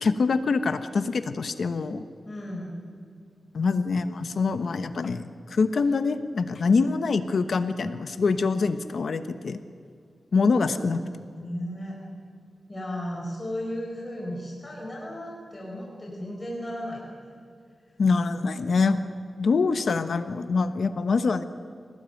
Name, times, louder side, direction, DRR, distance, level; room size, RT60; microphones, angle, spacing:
voice 1, 0.0-2.0 3.5-9.6 10.3-11.0 18.0-19.0 19.4-21.4, left 4 dB, 65° left, 10 dB, 1.1 m, -25 dB
voice 2, 2.2-2.8 10.6-11.1 11.4-12.0 12.7-17.0, equal, 20° left, -2 dB, 5.2 m, -35 dB
26.5 x 18.5 x 9.1 m, 2.2 s
wide cardioid pair, 115°, 0 cm